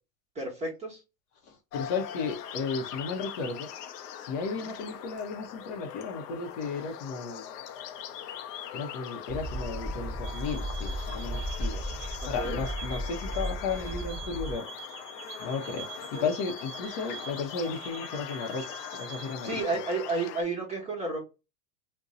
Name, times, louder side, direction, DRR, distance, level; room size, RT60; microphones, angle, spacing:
voice 1, 0.3-1.0 4.5-4.7 12.4-12.6 16.1-16.3 19.4-21.2, right 3 dB, 15° right, -2 dB, 1.0 m, -32 dB
voice 2, 1.5-3.7 4.1-7.5 8.7-11.8 12.2-14.6 15.4-19.6, left 4 dB, 45° left, 3 dB, 0.8 m, -34 dB
sound 1, 1.7-20.4, left 9 dB, 75° left, 0.7 m, -41 dB
sound 2, 9.3-14.5, equal, 5° left, 0.4 m, -35 dB
sound 3, 10.2-19.6, right 8 dB, 70° right, 0.6 m, -45 dB
2.6 x 2.2 x 3.7 m, 0.28 s
supercardioid pair, 140°, 49 cm